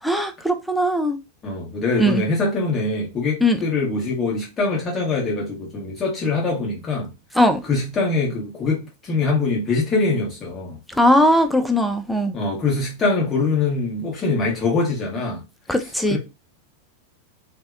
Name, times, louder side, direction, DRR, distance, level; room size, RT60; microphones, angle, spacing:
voice 1, 0.0-1.2 2.0-2.2 3.4-3.6 7.3-7.6 10.9-12.3 15.7-16.2, equal, ahead, 0.4 m, -19 dB
voice 2, 1.4-7.1 7.7-10.8 12.3-15.4 16.1-16.2, left 3 dB, 25° left, 1.0 m, -23 dB
2.7 x 2.0 x 2.4 m
figure-of-eight pair, 90°, 0 cm